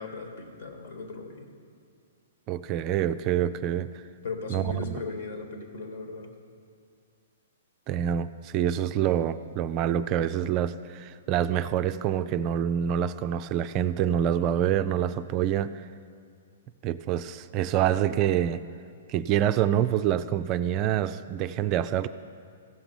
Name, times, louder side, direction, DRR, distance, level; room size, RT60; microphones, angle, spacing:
voice 1, 0.0-1.5 4.2-6.3, left 4 dB, 60° left, 5 dB, 1.5 m, -37 dB
voice 2, 2.5-4.0 4.5-5.0 7.9-15.9 16.8-18.6 19.1-22.1, right 10 dB, 35° right, 11 dB, 0.3 m, -26 dB
15.5 x 6.0 x 6.9 m, 2.3 s
figure-of-eight pair, 115°, 0 cm